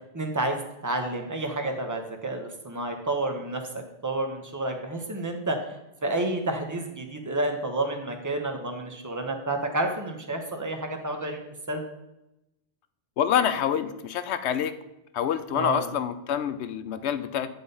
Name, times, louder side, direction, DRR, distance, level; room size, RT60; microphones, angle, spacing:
voice 1, 0.1-11.8 15.5-15.9, right 2 dB, 20° right, 4 dB, 0.9 m, -30 dB
voice 2, 13.2-14.7 15.1-17.5, left 9 dB, 85° left, 11 dB, 0.9 m, -27 dB
9.4 x 3.9 x 5.4 m, 0.90 s
omnidirectional pair, 1.1 m